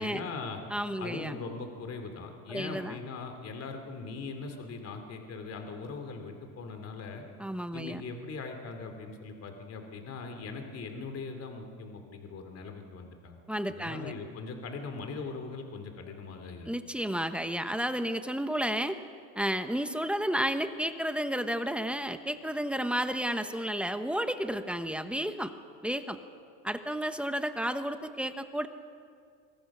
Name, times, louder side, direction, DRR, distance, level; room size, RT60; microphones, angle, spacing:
voice 1, 0.0-0.6 1.0-7.2 7.7-13.4 13.7-16.7, left 4 dB, 40° left, 5 dB, 3.0 m, -40 dB
voice 2, 0.7-1.4 2.5-3.0 7.4-8.0 13.5-14.1 16.7-19.0 19.4-25.5 25.8-26.2 26.6-28.7, equal, 5° right, 9 dB, 1.0 m, -32 dB
28.0 x 23.0 x 6.2 m, 2.2 s
cardioid pair, 135°, 40 cm